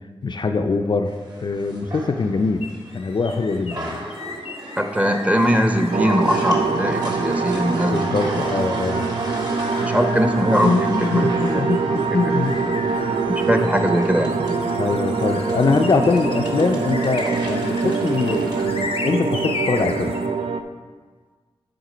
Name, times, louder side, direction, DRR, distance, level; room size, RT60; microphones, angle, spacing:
voice 1, 0.2-2.7 2.9-4.1 7.9-9.1 10.6-12.6 14.8-20.2, left 4 dB, 50° left, 6 dB, 0.4 m, -23 dB
sound 1, 1.1-18.6, right 1 dB, 45° right, 1.7 m, -35 dB
sound 2, 2.6-20.3, left 4 dB, 90° left, 0.7 m, -36 dB
voice 2, 4.8-8.1 9.8-11.9 12.3-12.6 13.3-14.4, equal, 15° right, 5 dB, 0.7 m, -21 dB
sound 3, 5.9-20.6, right 4 dB, 80° right, 0.4 m, -24 dB
9.4 x 3.7 x 5.0 m, 1.5 s
wide cardioid pair, 80°, 10 cm